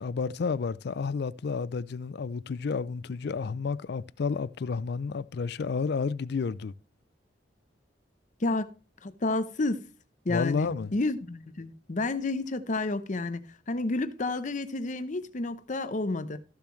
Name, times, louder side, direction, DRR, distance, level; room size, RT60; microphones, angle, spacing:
voice 1, 0.0-6.7 10.3-10.9, left 5 dB, 60° left, 0.4 m, -31 dB
voice 2, 9.0-9.8 10.2-13.4 13.7-16.4, left 2 dB, 45° left, 0.7 m, -30 dB
14.0 x 6.9 x 3.1 m
head